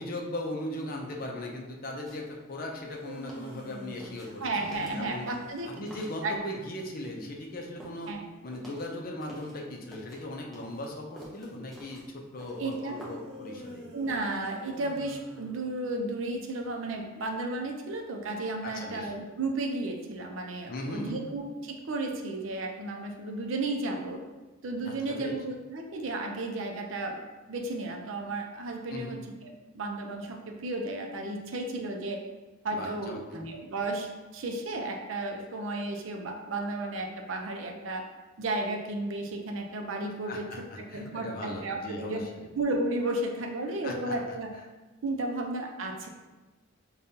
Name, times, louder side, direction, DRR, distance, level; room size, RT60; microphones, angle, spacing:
voice 1, 0.0-5.3 5.6-8.1 8.4-13.9 18.6-19.1 20.7-21.2 24.8-25.4 28.9-29.2 32.7-33.2 40.3-42.5 43.8-44.2, left 1 dB, 45° left, 1 dB, 0.5 m, -38 dB
sound 1, 2.1-2.3 2.7-6.8 7.0-9.6 9.9-13.4 13.7-13.8, right 1 dB, ahead, 0.7 m, -49 dB
sound 2, 2.9-6.0 13.2-16.1, left 1 dB, 90° right, 0.9 m, -47 dB
voice 2, 4.4-5.7 6.2-6.4 8.1-8.2 12.4-13.0 13.9-24.2 24.6-27.2 27.5-32.2 32.6-38.0 38.4-42.3 42.5-44.5 45.0-46.1, right 2 dB, 70° right, 3 dB, 0.5 m, -33 dB
5.2 x 2.3 x 2.7 m, 1.2 s
head